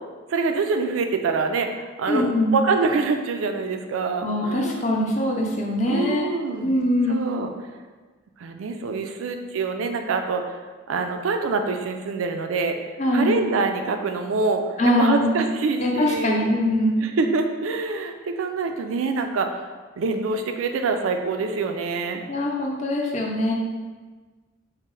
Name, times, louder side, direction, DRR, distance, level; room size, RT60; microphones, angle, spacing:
voice 1, 0.3-4.8 5.9-6.8 7.1-7.5 8.4-10.4 10.9-16.5 17.0-19.7 20.0-22.2, right 4 dB, 85° right, 6 dB, 0.4 m, -25 dB
voice 2, 2.1-2.6 4.2-6.3 6.6-7.2 13.0-13.4 14.8-15.4 15.8-17.1 22.3-23.5, left 1 dB, 35° left, -1 dB, 0.5 m, -22 dB
4.1 x 2.0 x 3.7 m, 1.4 s
head